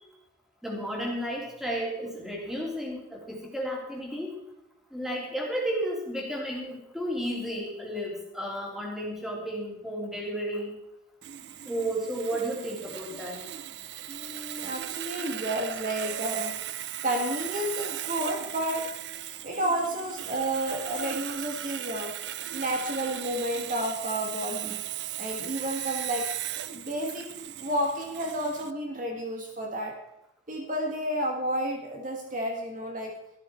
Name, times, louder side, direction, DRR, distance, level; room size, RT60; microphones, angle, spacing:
voice 1, 0.6-4.3 4.9-10.7 11.7-13.4, right 1 dB, ahead, -2 dB, 3.3 m, -33 dB
Sawing, 11.2-28.7, right 12 dB, 60° right, 0.5 m, -37 dB
voice 2, 14.1-16.5 17.0-18.9 19.4-22.1 22.5-24.8 25.2-26.3 26.7-27.3 27.6-30.0 30.5-33.2, right 1 dB, 45° right, 2 dB, 1.8 m, -31 dB
13.5 x 13.5 x 4.5 m, 0.82 s
head